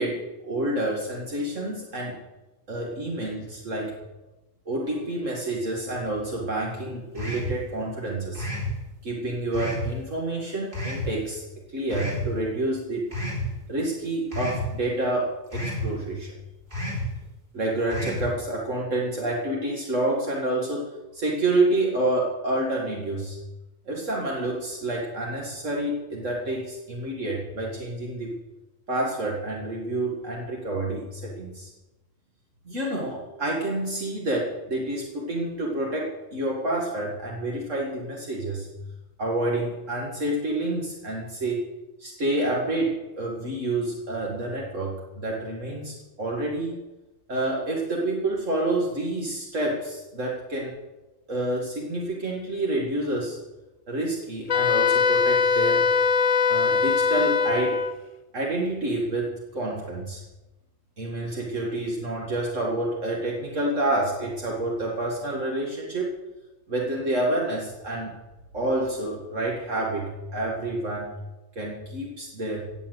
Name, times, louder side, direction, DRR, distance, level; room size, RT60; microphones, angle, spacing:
voice 1, 0.0-2.2 2.7-4.0 4.7-8.5 9.0-11.4 11.7-13.1 13.7-16.3 17.5-23.4 23.9-28.4 28.9-31.7 32.7-38.7 39.2-41.7 42.0-46.8 47.3-50.7 51.3-53.4 53.9-55.8 56.5-57.8 58.3-60.2 61.0-66.2 66.7-68.2 68.5-71.2 71.6-72.7, right 2 dB, 70° right, -2 dB, 2.5 m, -28 dB
sound 1, 7.2-7.6 8.4-8.7 9.5-9.9 10.7-11.1 11.9-12.3 13.1-13.5 14.3-14.7 15.5-15.9 16.7-17.1 17.9-18.3, equal, 40° right, 4.3 m, -30 dB
Wind instrument woodwind instrument, 54.5-58.0, left 5 dB, 55° left, 0.4 m, -21 dB
18.0 x 7.4 x 8.1 m, 1.0 s
omnidirectional pair, 1.4 m